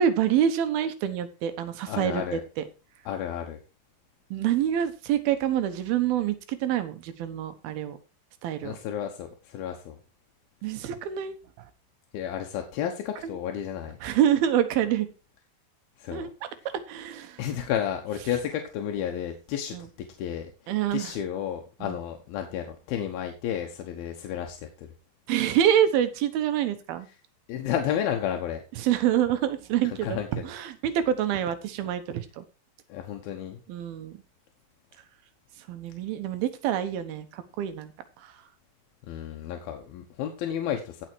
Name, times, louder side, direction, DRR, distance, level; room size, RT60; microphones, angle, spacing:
voice 1, 0.0-2.6 4.3-8.0 8.4-8.8 10.6-11.7 13.2-13.4 14.0-15.1 16.1-16.3 16.9-17.4 19.7-19.9 20.7-21.1 21.8-22.0 25.3-27.1 28.8-32.4 33.7-34.2 35.6-37.9 38.2-38.4, right 10 dB, 90° right, 10 dB, 3.0 m, -26 dB
voice 2, 1.9-2.4 3.1-3.6 8.6-10.0 12.1-14.0 16.0-16.3 17.4-19.8 20.2-24.9 27.5-28.6 29.8-30.3 32.9-33.6 39.1-41.1, left 9 dB, 85° left, 3 dB, 3.0 m, -32 dB
16.5 x 5.7 x 4.5 m, 0.31 s
omnidirectional pair, 4.2 m